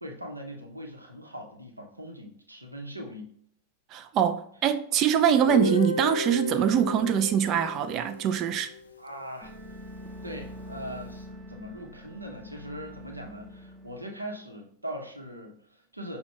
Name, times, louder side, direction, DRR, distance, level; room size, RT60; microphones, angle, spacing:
voice 1, 0.0-3.3 9.0-9.5 10.2-16.2, equal, 85° right, 0.7 m, -40 dB
voice 2, 3.9-8.7, right 9 dB, 35° right, 0.3 m, -24 dB
Guitar, 5.5-9.3, left 4 dB, 75° left, 0.4 m, -33 dB
sound 1, 9.4-14.0, equal, 5° left, 0.7 m, -44 dB
5.7 x 2.1 x 3.7 m
figure-of-eight pair, 90°, 0 cm